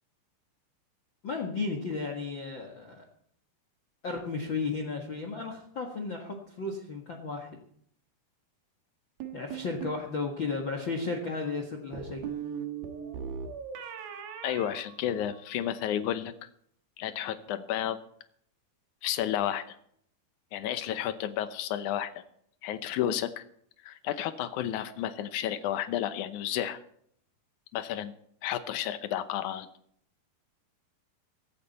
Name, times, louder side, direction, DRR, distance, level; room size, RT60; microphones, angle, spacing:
voice 1, 1.2-3.1 4.0-7.5 9.3-12.2, left 4 dB, 50° left, 4 dB, 1.5 m, -34 dB
sound 1, 9.2-10.0 11.9-15.7, right 7 dB, 70° right, 3.1 m, -39 dB
voice 2, 14.4-16.3 17.0-18.0 19.0-19.8 20.5-22.2 22.6-23.4 23.8-26.8 27.7-28.1 28.4-29.7, left 11 dB, 80° left, 11 dB, 1.8 m, -32 dB
16.5 x 13.5 x 4.2 m, 0.65 s
omnidirectional pair, 4.6 m